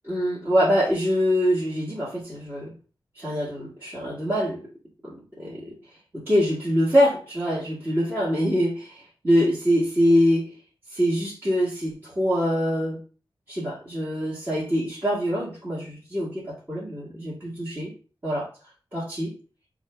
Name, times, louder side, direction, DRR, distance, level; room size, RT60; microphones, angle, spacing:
voice 1, 0.1-2.7 3.2-4.7 5.0-5.7 6.1-10.5 10.9-13.0 13.5-17.9 18.2-18.5 18.9-19.3, equal, 30° right, -9 dB, 1.9 m, -24 dB
4.8 x 2.7 x 3.4 m, 0.37 s
cardioid pair, 60°, 9 cm